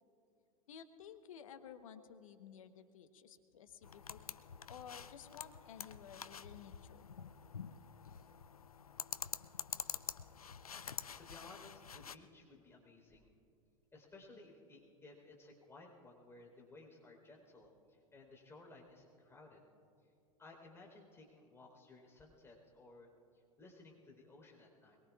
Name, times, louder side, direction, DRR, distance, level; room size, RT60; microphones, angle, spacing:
voice 1, 0.7-4.4 4.7-7.1, left 8 dB, 70° left, 10 dB, 1.1 m, -54 dB
sound 1, 3.8-12.2, left 7 dB, 90° left, 0.5 m, -47 dB
voice 2, 10.9-13.3 13.9-19.7 20.4-23.1 23.6-25.0, left 2 dB, 15° left, -1 dB, 4.0 m, -58 dB
23.0 x 22.5 x 2.4 m, 2.5 s
figure-of-eight pair, 90°, 18 cm